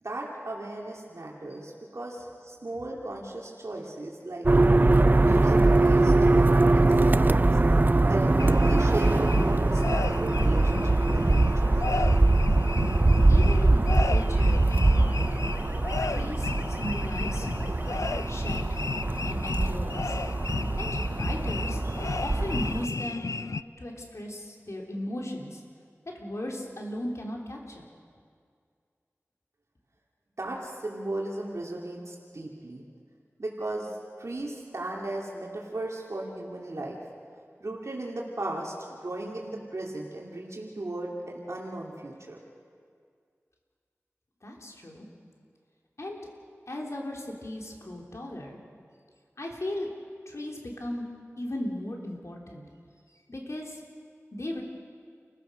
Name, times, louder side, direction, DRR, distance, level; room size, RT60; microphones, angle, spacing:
voice 1, 0.0-4.5 5.1-7.6 8.1-11.7 30.4-32.8 33.4-37.0 37.6-42.4, right 2 dB, 70° right, -2 dB, 2.7 m, -36 dB
sound 1, 4.4-22.9, right 2 dB, 35° right, 0.5 m, -22 dB
sound 2, 8.4-23.6, left 4 dB, 80° left, 0.5 m, -34 dB
voice 2, 10.3-10.6 13.3-15.3 16.1-17.8 18.3-18.9 19.2-20.2 20.8-21.8 22.2-23.3 23.8-25.6 26.1-27.9 44.4-45.1 46.0-46.2 46.7-48.6 49.4-49.9 50.3-51.1 51.4-52.6 53.3-53.8 54.3-54.6, left 1 dB, 65° left, 0 dB, 3.5 m, -37 dB
28.5 x 15.0 x 6.4 m, 2.2 s
wide cardioid pair, 55°, 5 cm